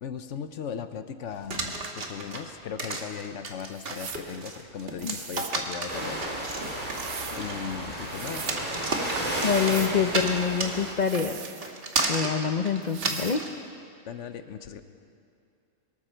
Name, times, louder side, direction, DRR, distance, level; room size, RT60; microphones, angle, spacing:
voice 1, 0.0-6.2 7.4-8.5 14.1-14.8, left 7 dB, 70° left, 10 dB, 1.0 m, -37 dB
sound 1, 1.5-13.5, right 3 dB, 50° right, 1.5 m, -33 dB
sound 2, 3.7-4.3 5.0-5.6 6.6-7.4 8.0-8.6 9.4-10.0 11.0-12.0 12.8-13.4, right 9 dB, 70° right, 1.0 m, -41 dB
sound 3, 5.9-10.9, right 1 dB, 30° right, 2.7 m, -33 dB
voice 2, 9.4-11.7 12.1-13.4, left 6 dB, 50° left, 6 dB, 0.6 m, -26 dB
23.0 x 13.5 x 4.5 m, 2.5 s
omnidirectional pair, 1.3 m